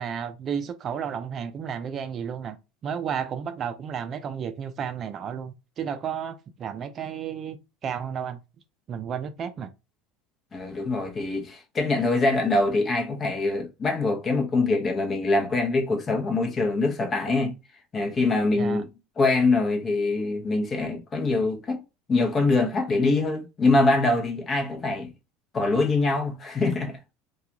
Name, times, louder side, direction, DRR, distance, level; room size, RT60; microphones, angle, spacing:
voice 1, 0.0-2.6 2.8-7.6 7.8-8.4 8.9-9.7 18.6-18.8, right 7 dB, 40° right, 0.4 m, -32 dB
voice 2, 10.5-17.5 17.9-18.9 19.2-21.8 22.1-25.1 25.5-27.1, left 3 dB, 30° left, 0.7 m, -24 dB
2.3 x 2.3 x 2.8 m
supercardioid pair, 95°, 0 cm